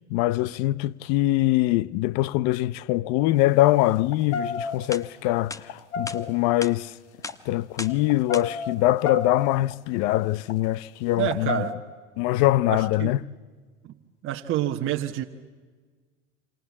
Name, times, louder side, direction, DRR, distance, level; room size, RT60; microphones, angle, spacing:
voice 1, 0.0-6.9 7.5-11.7 12.2-13.2, left 16 dB, 50° left, 0.8 m, -23 dB
sound 1, 3.3-3.4 4.0-5.0 5.5-6.5 7.1-7.3 7.9-9.7 10.3-10.6 11.2-11.7, left 4 dB, 75° left, 2.0 m, -32 dB
sound 2, 4.9-5.0 5.5-5.6 6.1-6.2 6.6-6.7 7.2-7.4 7.8-8.0 8.3-8.4, left 3 dB, 10° left, 1.0 m, -35 dB
voice 2, 11.2-11.8 12.7-13.2 13.8-13.9 14.2-15.2, right 12 dB, 35° right, 1.4 m, -28 dB
28.0 x 27.0 x 7.3 m
hypercardioid pair, 110°, 34 cm